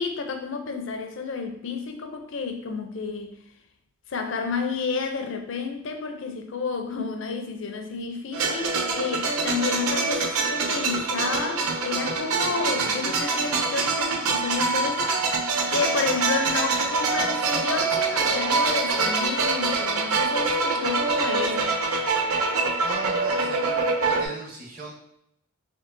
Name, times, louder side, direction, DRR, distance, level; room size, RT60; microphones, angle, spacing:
voice 1, 0.0-3.4 4.1-21.8, left 5 dB, 60° left, 0.5 m, -30 dB
sound 1, 8.3-24.3, right 3 dB, 90° right, 0.6 m, -25 dB
voice 2, 22.8-24.9, right 1 dB, 40° right, 1.0 m, -39 dB
4.4 x 2.7 x 2.6 m
head